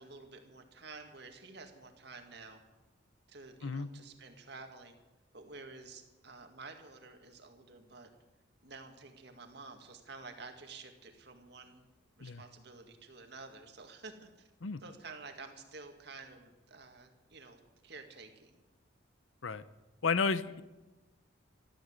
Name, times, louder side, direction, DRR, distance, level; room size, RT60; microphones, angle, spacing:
voice 1, 0.0-2.6 3.3-5.0 5.3-8.1 8.6-11.9 12.2-14.5 14.8-18.6, right 3 dB, 55° right, 5 dB, 2.1 m, -51 dB
voice 2, 20.0-20.6, left 4 dB, 90° left, 15 dB, 0.8 m, -32 dB
13.5 x 13.0 x 8.1 m, 1.1 s
head